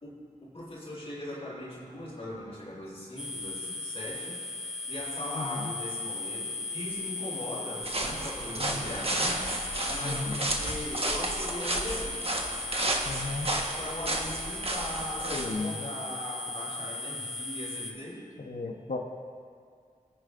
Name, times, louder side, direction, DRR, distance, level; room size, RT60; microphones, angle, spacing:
voice 1, 0.0-4.4 4.9-9.5 9.9-12.4 13.8-18.3, left 1 dB, 45° left, -7 dB, 3.5 m, -40 dB
sound 1, 3.2-17.9, left 2 dB, 5° right, 1.8 m, -37 dB
voice 2, 5.4-5.7 8.6-8.9 10.0-10.4 13.1-13.5 15.2-15.9 18.4-19.0, left 3 dB, 75° left, 1 dB, 1.0 m, -35 dB
sound 2, 7.8-15.5, right 1 dB, 45° right, 1.3 m, -32 dB
21.0 x 9.5 x 2.6 m, 2.2 s
wide cardioid pair, 45°, 14 cm